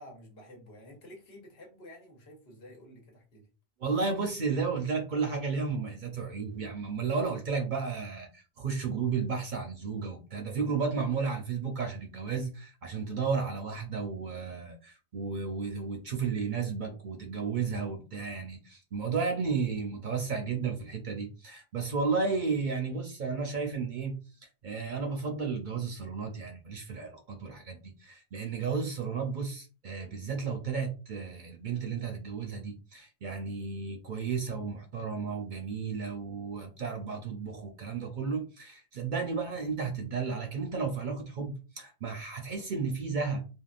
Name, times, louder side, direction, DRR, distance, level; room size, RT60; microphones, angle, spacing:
voice 1, 0.0-3.5, left 1 dB, 70° left, 1.2 m, -51 dB
voice 2, 3.8-24.1 24.6-43.4, right 5 dB, 55° right, 0.6 m, -33 dB
3.5 x 2.2 x 2.4 m
omnidirectional pair, 1.1 m